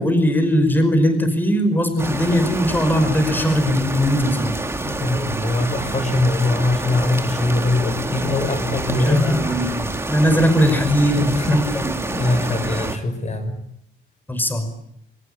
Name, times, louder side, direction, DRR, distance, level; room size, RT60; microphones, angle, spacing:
voice 1, 0.0-4.5 9.1-11.9 14.3-14.7, equal, 10° left, 8 dB, 5.5 m, -19 dB
sound 1, 2.0-13.0, right 2 dB, 10° right, 2.6 m, -27 dB
voice 2, 5.0-9.7 11.1-13.6, left 2 dB, 35° left, 8 dB, 6.0 m, -22 dB
23.0 x 20.0 x 9.9 m, 0.73 s
cardioid pair, 110°, 21 cm